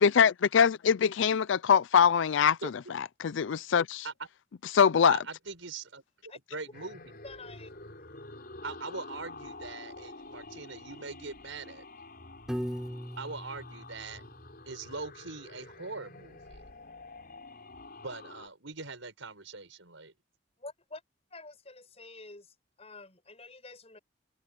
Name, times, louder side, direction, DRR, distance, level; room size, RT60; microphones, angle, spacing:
voice 1, 0.0-2.6 2.9-4.0 4.7-5.2, left 7 dB, 65° left, 0.4 m, -23 dB
voice 2, 5.1-7.2 8.6-11.8 13.2-14.2 14.7-16.6 18.0-20.1, right 3 dB, 75° right, 5.7 m, -42 dB
sound 1, 6.7-18.5, left 2 dB, 50° left, 6.0 m, -48 dB
voice 3, 7.2-7.7 20.6-21.0 21.3-22.4 22.8-24.0, left 3 dB, 30° left, 7.3 m, -47 dB
Piano, 12.5-14.7, equal, 5° right, 7.0 m, -39 dB
head